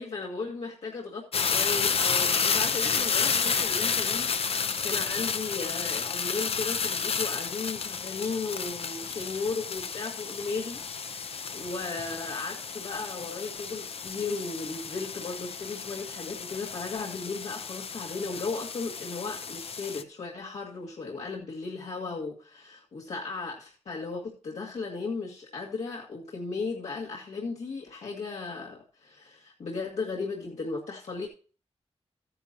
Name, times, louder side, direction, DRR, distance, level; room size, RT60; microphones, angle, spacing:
voice 1, 0.0-31.3, left 4 dB, 75° left, -4 dB, 2.0 m, -36 dB
sound 1, 1.3-20.0, left 5 dB, 60° left, 0.7 m, -31 dB
15.0 x 9.9 x 2.9 m, 0.38 s
wide cardioid pair, 180°, 11 cm